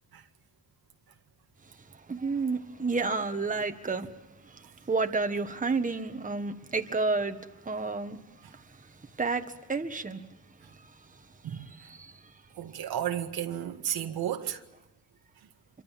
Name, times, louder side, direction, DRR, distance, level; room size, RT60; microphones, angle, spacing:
voice 1, 2.1-4.1 4.4-7.4 7.6-8.2 8.5-8.9 9.2-10.2 10.8-10.9 11.5-12.2, right 3 dB, 20° right, 1.7 m, -31 dB
voice 2, 12.6-14.6, right 10 dB, 85° right, 2.0 m, -33 dB
27.5 x 24.5 x 7.6 m
cardioid pair, 110°, 36 cm